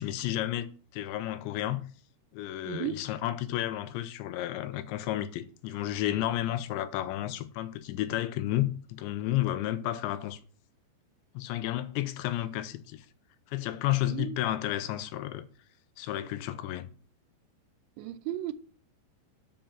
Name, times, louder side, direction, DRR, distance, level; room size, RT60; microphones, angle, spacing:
voice 1, 0.0-1.8 2.3-10.4 11.3-13.1 13.5-15.4 16.0-16.9, left 13 dB, 90° left, 3.0 m, -32 dB
voice 2, 2.7-3.0 14.0-14.4 18.0-18.5, right 13 dB, 90° right, 3.0 m, -35 dB
6.7 x 5.6 x 7.2 m
omnidirectional pair, 5.1 m